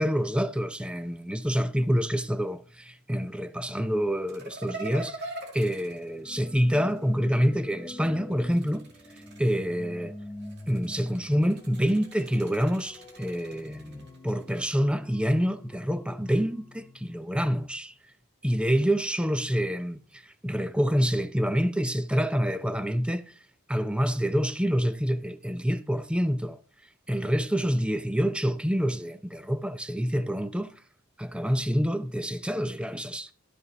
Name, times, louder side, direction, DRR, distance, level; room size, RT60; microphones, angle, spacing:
voice 1, 0.0-5.2 5.5-8.8 9.4-10.2 10.7-17.9 18.4-23.3 23.7-26.6 27.1-30.7 31.2-33.3, equal, 5° right, 0.5 m, -27 dB
sound 1, 4.3-7.0 8.3-9.8 10.4-14.6, right 2 dB, 50° right, 2.1 m, -44 dB
sound 2, 5.8-17.8, left 1 dB, 15° left, 1.7 m, -46 dB
12.5 x 5.7 x 3.9 m
head